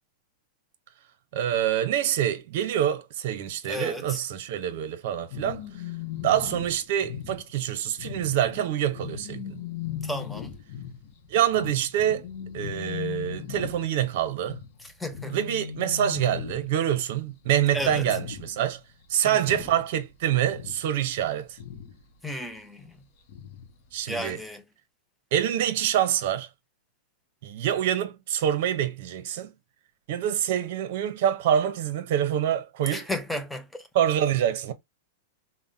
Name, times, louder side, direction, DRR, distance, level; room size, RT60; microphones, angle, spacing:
voice 1, 1.3-5.6 6.2-9.6 11.3-12.3 12.5-14.6 15.3-18.8 19.1-21.6 23.9-24.4 25.3-26.5 27.4-29.5 30.1-33.1 33.9-34.7, right 10 dB, 60° right, 0.6 m, -26 dB
voice 2, 3.7-4.2 10.0-10.5 15.0-15.4 17.7-18.0 19.2-19.6 22.2-22.9 24.1-24.6 32.9-33.9, left 1 dB, 5° left, 0.5 m, -33 dB
sound 1, 5.3-17.0 17.3-17.5 17.7-18.7 19.0-20.1 20.4-22.0 23.3-23.7 24.1-24.2, left 9 dB, 55° left, 0.7 m, -38 dB
3.5 x 2.1 x 2.6 m
hypercardioid pair, 135°, 0 cm